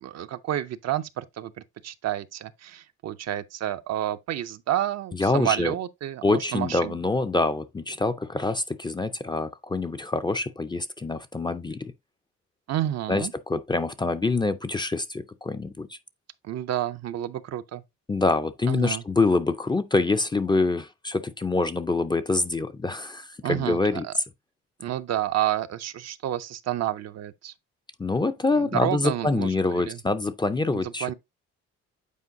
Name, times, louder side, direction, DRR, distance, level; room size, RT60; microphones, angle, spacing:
voice 1, 0.0-7.0 12.7-13.3 16.4-17.8 18.7-19.0 23.4-24.1 24.8-27.5 28.5-30.0 30.7-31.1, right 12 dB, 60° right, 0.6 m, -30 dB
voice 2, 5.1-5.7 6.2-11.9 13.1-16.0 18.1-24.0 28.0-31.1, left 3 dB, 15° left, 0.4 m, -25 dB
8.4 x 4.4 x 2.7 m
cardioid pair, 90°, 30 cm